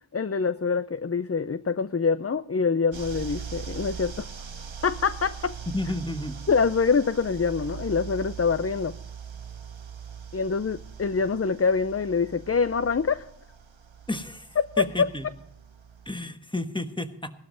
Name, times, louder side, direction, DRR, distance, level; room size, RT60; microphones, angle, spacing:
voice 1, 0.1-4.3 4.8-5.6 6.5-8.9 10.3-13.2 14.8-14.9, left 5 dB, 35° left, 13 dB, 0.5 m, -25 dB
sound 1, 2.9-16.1, right 7 dB, 85° right, 1.0 m, -41 dB
voice 2, 5.7-6.4 14.1-15.2 16.0-17.3, left 1 dB, 10° left, 8 dB, 1.4 m, -31 dB
17.5 x 12.5 x 3.9 m, 0.69 s
wide cardioid pair, 40°, 45 cm